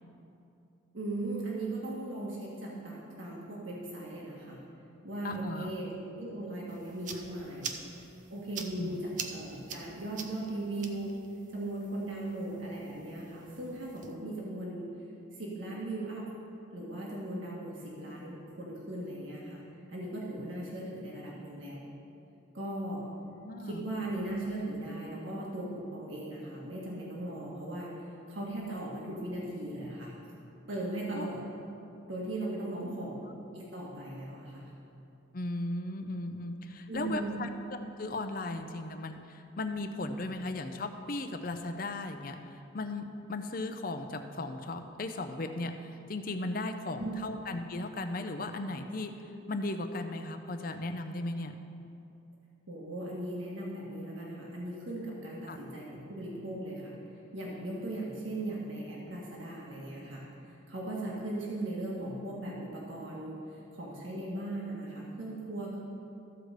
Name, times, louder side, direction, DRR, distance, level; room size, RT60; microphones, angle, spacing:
voice 1, 0.9-4.6 5.0-5.9 6.2-7.7 8.3-11.2 11.5-14.9 15.4-16.4 16.7-19.6 19.9-21.9 22.5-23.1 23.6-27.9 28.3-30.1 30.7-31.4 32.1-33.3 33.5-34.6 36.9-37.5 47.0-47.2 52.7-57.0 57.3-60.3 60.7-65.8, right 1 dB, 75° right, -4 dB, 1.6 m, -38 dB
voice 2, 5.2-5.7 8.8-9.0 23.4-23.8 31.1-31.3 32.8-32.9 35.3-37.5 38.0-49.1 49.5-51.6 55.5-55.6, left 2 dB, 45° left, 7 dB, 0.6 m, -36 dB
sound 1, 6.7-14.1, right 6 dB, 40° right, 0.6 m, -45 dB
14.0 x 4.8 x 6.6 m, 2.8 s
head